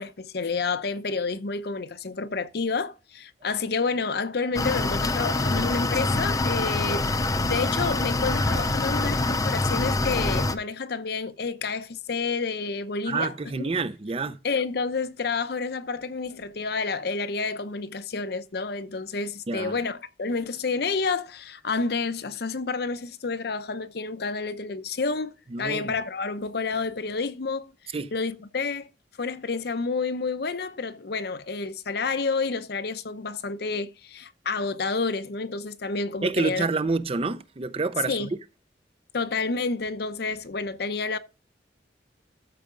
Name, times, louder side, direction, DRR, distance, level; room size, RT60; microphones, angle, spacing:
voice 1, 0.0-13.7 14.4-28.9 29.2-36.7 38.1-38.3 39.1-41.2, left 4 dB, 60° left, 0.7 m, -29 dB
sound 1, 4.5-10.5, left 2 dB, 20° left, 0.5 m, -25 dB
voice 2, 13.1-14.4 19.5-19.8 25.5-25.9 27.9-28.1 36.2-38.3, right 4 dB, 35° right, 0.5 m, -28 dB
13.5 x 4.9 x 3.7 m
head